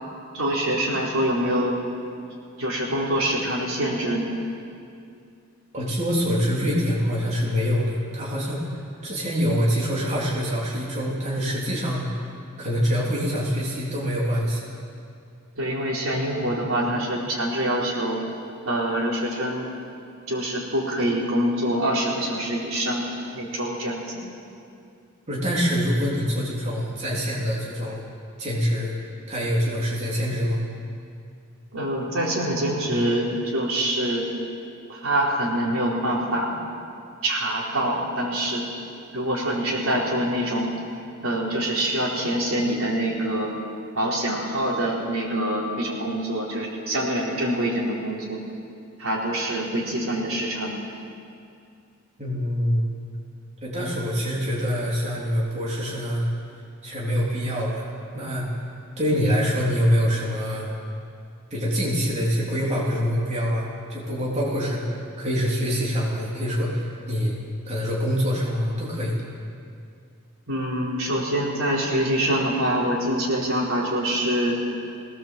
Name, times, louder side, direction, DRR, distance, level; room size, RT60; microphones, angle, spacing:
voice 1, 0.3-1.8 2.6-4.3 15.6-18.2 18.6-19.7 20.3-23.0 23.3-24.2 31.7-34.3 34.9-36.6 37.2-38.6 39.1-40.7 41.2-43.5 43.9-48.4 49.0-50.8 70.5-74.6, right 1 dB, 75° right, -3 dB, 4.3 m, -25 dB
voice 2, 5.7-8.8 9.0-12.1 12.6-14.7 25.3-28.0 28.4-28.9 29.3-30.6 52.2-52.8 53.6-56.3 56.8-57.9 58.1-58.5 59.0-60.7 61.5-67.3 67.7-69.2, equal, 35° right, -5 dB, 3.5 m, -25 dB
20.5 x 18.5 x 7.6 m, 2.4 s
head